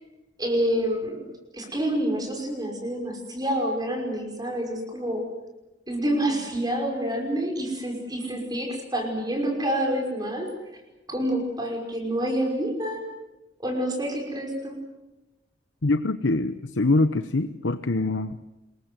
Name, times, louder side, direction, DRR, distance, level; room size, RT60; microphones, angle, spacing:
voice 1, 0.4-1.3 1.5-5.2 5.9-10.5 11.1-13.0 13.6-14.8, right 1 dB, 20° right, 2 dB, 5.6 m, -27 dB
voice 2, 15.8-18.4, left 2 dB, 80° left, 11 dB, 0.9 m, -24 dB
27.0 x 22.5 x 7.8 m, 1.0 s
head